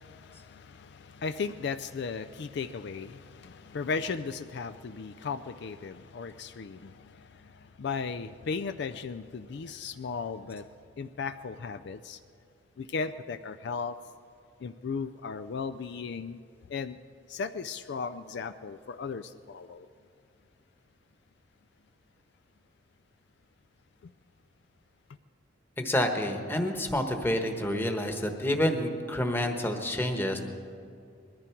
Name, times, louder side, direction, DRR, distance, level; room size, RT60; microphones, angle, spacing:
voice 1, 0.0-12.2 12.8-14.0 14.6-16.4 16.7-17.0 17.3-19.9 24.0-24.1, left 5 dB, 60° left, 10 dB, 0.4 m, -36 dB
voice 2, 25.8-30.4, left 1 dB, 10° left, 4 dB, 1.2 m, -28 dB
21.0 x 14.0 x 4.5 m, 2.5 s
head